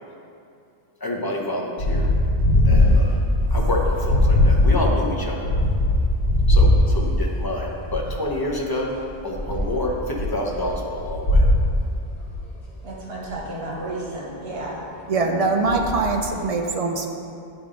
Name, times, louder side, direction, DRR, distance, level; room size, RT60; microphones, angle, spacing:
voice 1, 1.0-2.1 2.7-3.2 3.5-5.5 6.5-8.9 9.2-11.5, left 1 dB, 25° left, -2 dB, 0.7 m, -28 dB
sound 1, 1.8-8.2 8.5-12.4 13.3-13.4 15.7-16.2, left 1 dB, 60° left, 1.8 m, -20 dB
voice 2, 12.8-14.8 15.1-15.3, right 2 dB, 75° right, -3 dB, 1.4 m, -32 dB
voice 3, 15.1-17.1, right 3 dB, 45° right, 2 dB, 0.5 m, -22 dB
9.8 x 3.6 x 3.8 m, 2.5 s
omnidirectional pair, 1.1 m